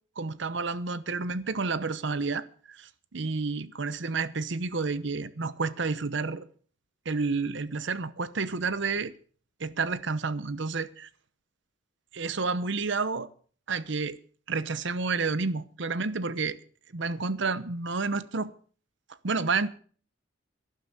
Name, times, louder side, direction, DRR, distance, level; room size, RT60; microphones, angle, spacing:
voice 1, 0.2-6.5 7.0-9.1 9.6-11.1 12.1-13.3 13.7-14.2 14.5-16.6 16.9-18.5 19.2-19.7, right 4 dB, 65° right, 0.9 m, -30 dB
12.0 x 11.0 x 6.7 m
head